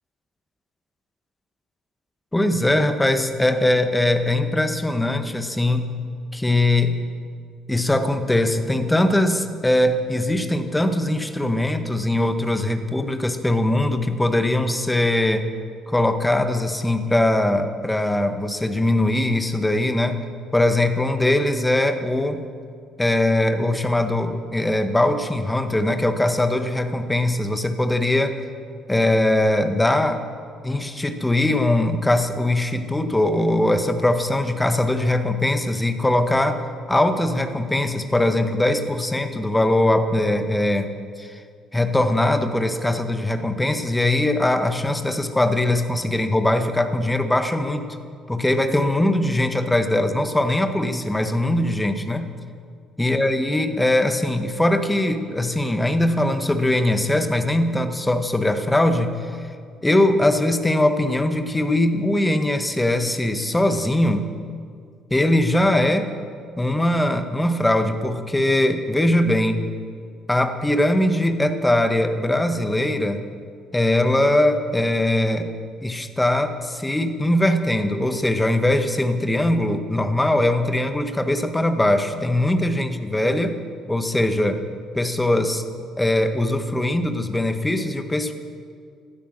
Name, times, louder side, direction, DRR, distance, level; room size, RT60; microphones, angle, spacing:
voice 1, 2.3-5.9 6.3-7.0 7.7-15.5 15.9-20.2 20.5-22.4 23.0-28.4 28.9-30.2 30.6-36.6 36.9-40.9 41.2-41.4 41.7-47.8 48.3-52.3 53.0-59.4 59.8-64.2 65.1-66.1 66.6-69.7 70.3-73.2 73.7-75.5 75.8-83.6 83.9-84.6 84.9-85.6 86.0-88.3, left 1 dB, 10° left, 8 dB, 1.6 m, -21 dB
18.0 x 12.5 x 6.3 m, 2.2 s
figure-of-eight pair, 50°, 0 cm